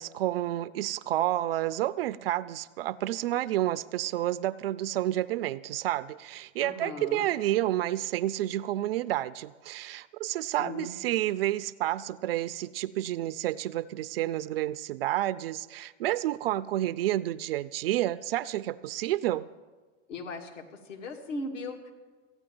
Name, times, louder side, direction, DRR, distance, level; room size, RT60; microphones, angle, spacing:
voice 1, 0.0-19.5, right 14 dB, 50° right, 16 dB, 0.4 m, -30 dB
voice 2, 6.6-7.3 10.6-10.9 20.1-20.6 20.9-21.9, left 2 dB, 65° left, 2 dB, 2.5 m, -38 dB
14.0 x 9.3 x 7.7 m, 1.4 s
hypercardioid pair, 125°, 39 cm